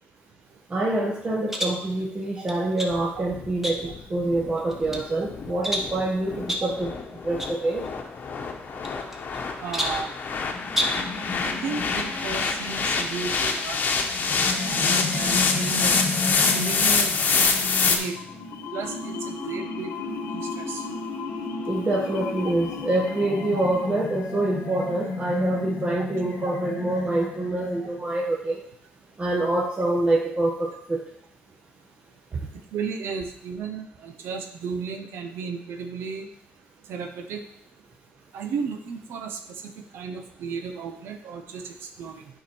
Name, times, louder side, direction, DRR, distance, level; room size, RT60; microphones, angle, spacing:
voice 1, 0.7-6.9 7.2-7.8 21.7-28.6 29.2-31.0, right 2 dB, 30° right, -3 dB, 1.2 m, -26 dB
sound 1, 1.5-1.8 2.5-3.0 3.6-4.1 4.6-5.1 5.6-6.0 6.5-6.8 7.4-7.6 7.8-7.9 8.8-9.4 9.7-10.1 10.7-11.1, equal, 5° right, 1.1 m, -29 dB
sound 2, 2.9-18.0, left 5 dB, 45° left, 1.0 m, -26 dB
voice 2, 9.6-10.1 11.4-13.8 14.7-16.0 16.5-17.4 17.8-18.1 18.7-20.8 26.5-26.6 32.7-36.3 36.9-37.4 38.3-39.4 39.9-42.2, right 5 dB, 80° right, 5 dB, 0.9 m, -34 dB
sound 3, 10.3-28.2, left 3 dB, 85° left, 1.2 m, -34 dB
9.1 x 4.9 x 4.5 m, 0.69 s
cardioid pair, 110°, 4 cm